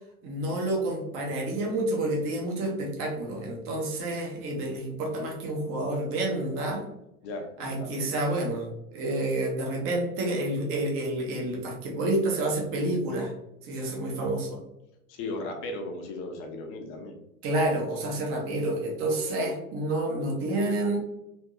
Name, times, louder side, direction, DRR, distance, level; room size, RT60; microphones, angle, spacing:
voice 1, 0.2-6.8 7.6-13.3 13.6-14.6 17.4-21.0, right 1 dB, 30° right, -1 dB, 0.8 m, -29 dB
voice 2, 7.2-8.1 15.1-17.2, left 2 dB, 30° left, 3 dB, 0.6 m, -36 dB
3.5 x 2.6 x 2.5 m, 0.88 s
figure-of-eight pair, 85°, 42 cm